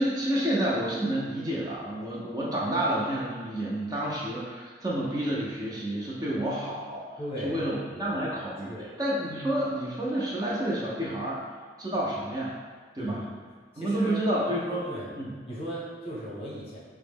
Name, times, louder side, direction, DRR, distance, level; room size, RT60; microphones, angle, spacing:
voice 1, 0.0-7.0 7.4-8.7 9.0-11.4 11.8-12.6 12.9-13.2 13.8-14.9 15.2-15.3, right 1 dB, 20° right, -6 dB, 0.4 m, -29 dB
voice 2, 7.2-8.4 8.7-8.9 13.0-13.3 13.7-14.2 14.5-15.1 15.5-16.8, equal, 30° left, -6 dB, 0.7 m, -37 dB
3.6 x 2.0 x 3.5 m, 1.5 s
head